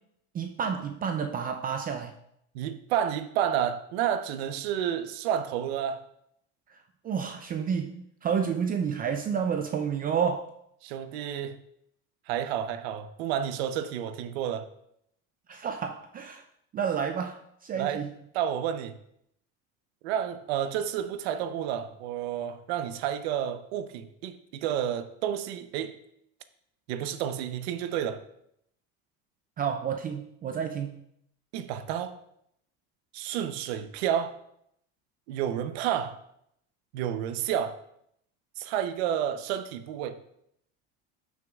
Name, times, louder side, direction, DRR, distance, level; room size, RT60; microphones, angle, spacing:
voice 1, 0.3-2.1 6.7-6.8 7.0-10.5 15.5-16.4 16.7-18.1 29.6-31.0, right 7 dB, 30° right, 0.5 m, -30 dB
voice 2, 2.5-6.0 10.8-11.6 12.3-14.7 17.8-18.0 18.3-19.0 20.0-26.0 26.9-28.2 31.5-32.1 33.1-34.4 35.3-36.1 36.9-37.8 38.6-40.2, right 9 dB, 90° right, 0.8 m, -30 dB
12.0 x 6.3 x 2.4 m
supercardioid pair, 130°, 30 cm